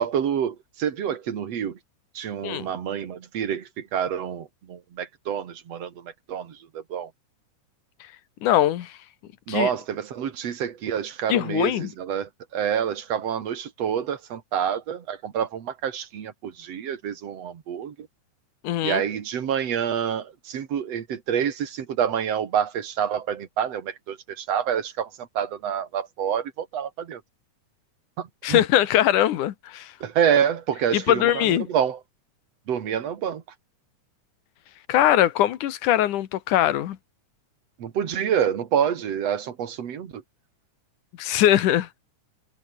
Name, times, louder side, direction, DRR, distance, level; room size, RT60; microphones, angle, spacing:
voice 1, 0.0-1.8 2.1-7.1 9.5-18.1 18.8-27.2 28.2-28.6 30.0-32.0 32.7-33.4 37.8-40.2, right 8 dB, 60° right, 3.0 m, -27 dB
voice 2, 8.4-9.0 9.5-9.7 11.3-11.9 18.6-19.0 28.4-29.9 30.9-31.7 34.9-37.0 41.2-41.9, left 12 dB, 90° left, 2.8 m, -21 dB
omnidirectional pair, 3.5 m